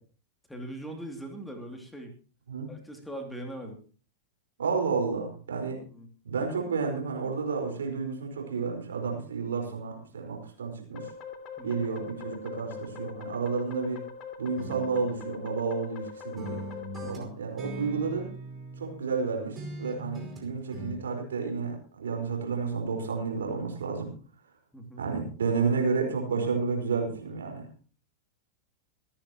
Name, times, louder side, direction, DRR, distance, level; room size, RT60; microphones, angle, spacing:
voice 1, 0.5-2.1 2.7-3.8 5.9-6.1 11.6-11.9 13.0-13.2 17.0-17.3 24.7-25.0, right 1 dB, 5° left, 3 dB, 2.7 m, -41 dB
voice 2, 4.6-5.8 6.2-11.1 11.6-14.0 14.4-16.6 17.0-18.3 18.8-24.1 25.0-27.7, right 5 dB, 65° right, 2 dB, 4.7 m, -31 dB
sound 1, 10.9-17.2, left 7 dB, 35° left, 2.9 m, -42 dB
sound 2, 14.6-16.0 16.4-19.2 19.6-21.0, right 1 dB, 20° right, 5.0 m, -41 dB
26.0 x 10.0 x 3.0 m, 0.40 s
figure-of-eight pair, 90°, 0 cm